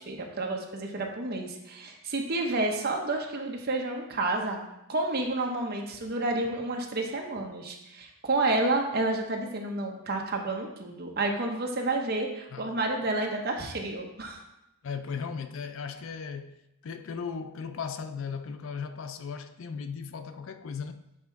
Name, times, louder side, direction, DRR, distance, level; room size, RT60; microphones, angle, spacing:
voice 1, 0.0-14.4, right 2 dB, 45° right, 0.8 m, -30 dB
voice 2, 14.8-16.6 16.8-21.1, left 6 dB, 60° left, 0.4 m, -37 dB
7.3 x 3.6 x 4.6 m
head